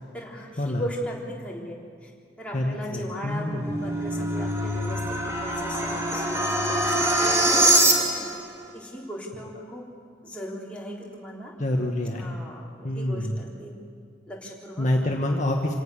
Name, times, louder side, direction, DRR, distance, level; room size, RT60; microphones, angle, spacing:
voice 1, 0.1-1.8 2.0-2.1 2.4-8.2 8.7-9.8 10.2-11.5 12.0-13.7 14.3-14.9, equal, 5° left, -3 dB, 3.5 m, -38 dB
voice 2, 2.5-3.8 11.6-12.4 12.8-13.4 14.8-15.7, left 1 dB, 40° left, 1 dB, 1.5 m, -27 dB
sound 1, 3.3-8.4, right 1 dB, 15° right, 2.7 m, -23 dB
27.0 x 17.5 x 7.0 m, 2.1 s
head